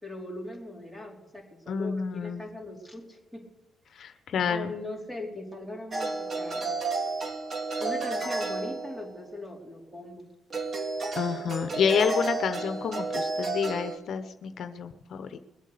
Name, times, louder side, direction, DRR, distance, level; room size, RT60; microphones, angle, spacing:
voice 1, 0.0-3.5 4.5-6.7 7.8-10.3, left 2 dB, 10° right, 1 dB, 4.3 m, -40 dB
voice 2, 1.7-2.4 4.0-4.7 11.2-15.4, left 7 dB, 65° left, 8 dB, 1.0 m, -29 dB
sound 1, 5.9-9.3 10.5-14.0, right 3 dB, 45° right, 2.2 m, -31 dB
21.5 x 8.2 x 6.8 m, 1.1 s
cardioid pair, 90°, 0 cm